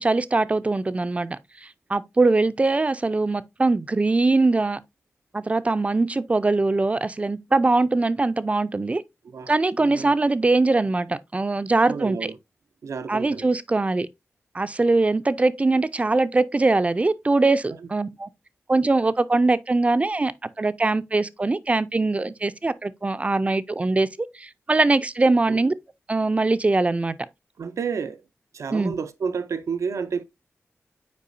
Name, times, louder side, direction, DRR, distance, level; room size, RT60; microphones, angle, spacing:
voice 1, 0.0-1.4 1.9-4.8 5.3-9.0 9.5-12.3 13.1-14.1 14.5-18.3 18.7-20.3 20.6-24.1 24.4-25.7 26.1-27.2 28.7-28.9, right 3 dB, 25° right, 0.4 m, -22 dB
voice 2, 9.8-10.1 11.9-12.4 12.8-13.5 25.5-25.6 27.6-28.2 28.5-30.2, right 6 dB, 90° right, 0.6 m, -30 dB
8.3 x 4.8 x 2.5 m
wide cardioid pair, 115°, 5 cm